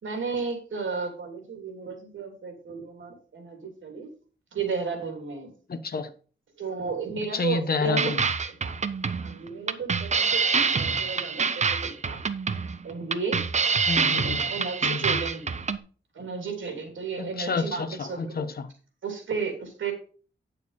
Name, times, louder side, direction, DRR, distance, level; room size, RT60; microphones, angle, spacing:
voice 1, 0.0-4.1 4.5-5.5 6.6-8.8 9.1-10.5 10.7-12.2 12.8-13.4 14.0-15.5 16.1-18.4 19.0-19.9, right 5 dB, 80° right, 3.1 m, -33 dB
voice 2, 5.7-6.1 7.3-8.3 13.9-14.4 14.8-15.2 17.2-18.7, left 4 dB, 50° left, 1.0 m, -29 dB
sound 1, 8.0-15.8, right 5 dB, 35° right, 0.6 m, -26 dB
9.2 x 6.7 x 4.2 m
wide cardioid pair, 150°, 20 cm